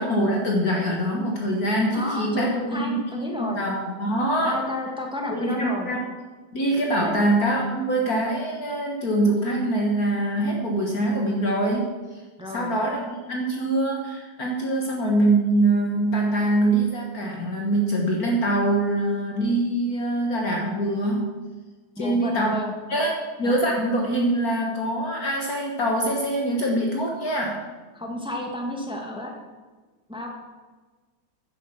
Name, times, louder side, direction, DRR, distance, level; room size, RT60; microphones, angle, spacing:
voice 1, 0.0-2.5 2.8-3.0 3.4-4.6 5.3-6.0 6.5-11.9 12.5-21.3 22.0-22.6 22.9-23.1 23.4-27.6, right 1 dB, 55° left, 0 dB, 1.9 m, -24 dB
voice 2, 1.9-3.6 4.5-5.9 7.0-7.2 12.4-12.7 22.0-22.7 23.4-23.5 27.9-29.3 30.1-30.3, left 1 dB, 5° right, 0 dB, 1.7 m, -31 dB
10.5 x 7.6 x 7.4 m, 1.4 s
omnidirectional pair, 2.0 m